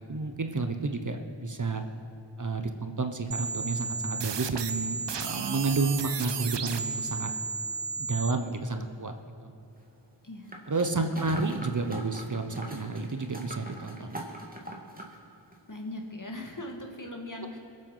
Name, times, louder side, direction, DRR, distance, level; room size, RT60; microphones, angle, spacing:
voice 1, 0.1-1.8 2.4-7.3 8.0-9.1 9.4-9.5 10.7-14.2, right 3 dB, 40° right, 6 dB, 1.0 m, -30 dB
sound 1, 3.3-8.3, right 5 dB, 65° right, 0.8 m, -33 dB
sound 2, 10.5-15.1 15.5-15.6, right 1 dB, 20° right, 2.2 m, -42 dB
voice 2, 15.7-17.6, left 1 dB, 40° left, 2 dB, 2.2 m, -39 dB
22.0 x 7.7 x 5.7 m, 2.8 s
cardioid pair, 40°, 45 cm